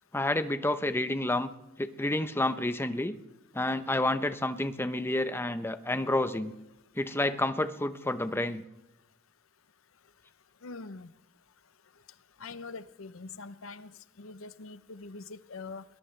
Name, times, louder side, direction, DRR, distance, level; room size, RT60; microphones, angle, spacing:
voice 1, 0.1-1.5 1.8-3.2 3.5-6.5 6.9-8.6, left 1 dB, 10° left, 10 dB, 0.8 m, -29 dB
voice 2, 10.6-11.1 12.4-13.9 14.2-15.8, left 3 dB, 85° left, 14 dB, 0.8 m, -43 dB
21.5 x 20.0 x 3.3 m, 0.94 s
head